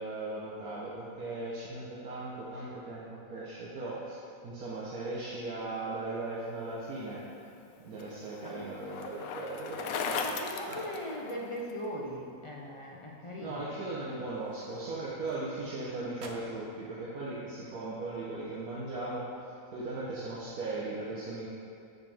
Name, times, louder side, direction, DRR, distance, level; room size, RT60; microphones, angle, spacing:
voice 1, 0.0-3.0 3.3-7.2 7.8-10.3 10.7-10.8 13.4-19.2 19.7-21.5, right 2 dB, 80° right, -7 dB, 1.5 m, -38 dB
Bicycle, 7.3-11.7, left 5 dB, 75° left, 1.0 m, -38 dB
voice 2, 9.8-13.7, equal, 35° left, -2 dB, 0.5 m, -40 dB
sound 1, 10.0-12.1 12.5-12.8 13.2-13.3 13.9-15.8 16.1-16.7, right 3 dB, 55° right, 0.9 m, -55 dB
8.6 x 6.6 x 3.4 m, 2.5 s
omnidirectional pair, 1.5 m